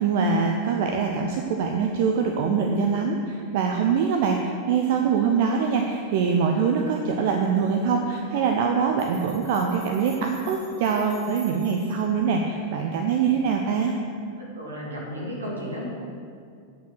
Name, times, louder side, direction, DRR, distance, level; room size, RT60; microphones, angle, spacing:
voice 1, 0.0-13.9, right 6 dB, 50° right, 2 dB, 0.6 m, -24 dB
sound 1, 9.0-12.1, right 4 dB, 25° right, 2.3 m, -49 dB
voice 2, 14.4-15.9, equal, 75° right, -4 dB, 2.3 m, -34 dB
9.0 x 5.4 x 6.1 m, 2.3 s
figure-of-eight pair, 90°, 0 cm